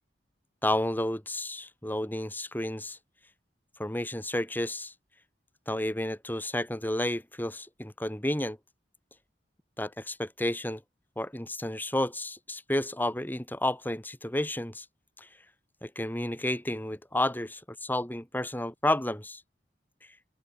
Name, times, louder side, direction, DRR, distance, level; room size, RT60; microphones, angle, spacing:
voice 1, 0.6-3.0 3.8-4.9 5.7-8.6 9.8-10.8 11.2-14.8 15.2-15.3 15.8-19.4, left 1 dB, 10° left, 3.1 m, -31 dB
open air
head